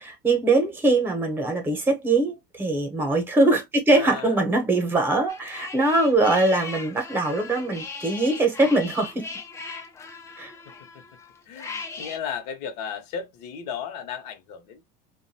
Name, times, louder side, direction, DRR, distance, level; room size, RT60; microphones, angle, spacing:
voice 1, 0.0-9.3 10.4-10.5, right 2 dB, 10° right, 0.9 m, -22 dB
voice 2, 3.9-4.4 10.6-11.0 11.5-14.9, left 7 dB, 70° left, 1.0 m, -35 dB
sound 1, 5.3-12.2, left 4 dB, 15° left, 0.5 m, -38 dB
2.5 x 2.3 x 2.7 m
supercardioid pair, 140°, 21 cm